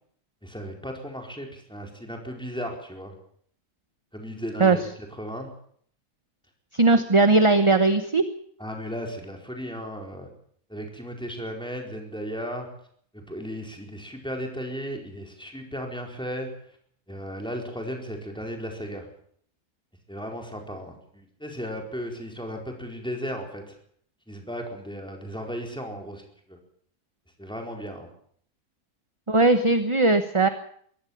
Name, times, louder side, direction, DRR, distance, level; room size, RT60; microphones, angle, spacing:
voice 1, 0.4-3.1 4.1-4.9 5.2-5.5 8.6-10.3 10.7-12.7 13.1-16.5 17.1-19.1 20.1-23.8 24.3-26.6 27.4-28.1, equal, 5° left, 2 dB, 4.6 m, -35 dB
voice 2, 6.7-8.2 29.3-30.5, right 3 dB, 25° right, 9 dB, 1.0 m, -19 dB
23.0 x 17.0 x 7.3 m, 0.62 s
omnidirectional pair, 1.6 m